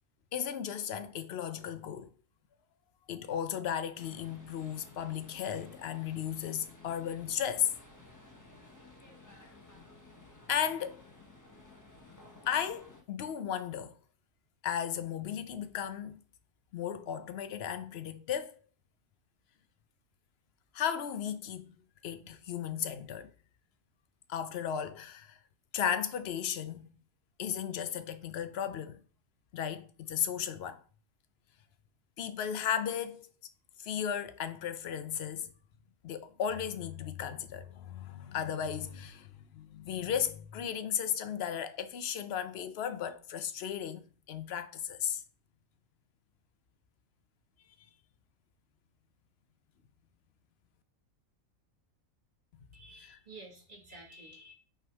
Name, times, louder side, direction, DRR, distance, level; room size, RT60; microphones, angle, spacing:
voice 1, 0.3-2.1 3.1-7.7 10.5-11.0 12.5-13.9 14.6-16.2 16.7-18.6 20.7-21.7 22.0-23.3 24.3-25.4 25.7-26.9 27.4-29.0 29.5-30.8 32.2-33.3 33.8-35.5 36.0-45.2 53.0-53.1, left 9 dB, 60° left, 0.7 m, -35 dB
sound 1, 3.9-13.0, left 2 dB, 15° left, 1.0 m, -55 dB
voice 2, 52.7-54.5, right 2 dB, 35° right, 1.7 m, -51 dB
5.8 x 3.6 x 4.5 m
omnidirectional pair, 1.4 m